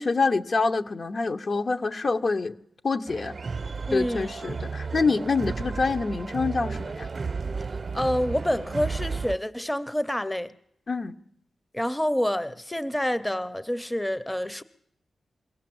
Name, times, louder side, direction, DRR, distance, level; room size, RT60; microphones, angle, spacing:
voice 1, 0.0-2.6 2.8-3.4 3.9-7.1 10.9-11.2, left 4 dB, 55° left, 0.9 m, -26 dB
sound 1, 3.1-9.4, right 4 dB, 50° right, 0.7 m, -33 dB
voice 2, 3.9-4.3 7.9-10.5 11.7-14.6, equal, 10° left, 0.7 m, -27 dB
22.0 x 17.0 x 7.8 m
cardioid pair, 65°, 0 cm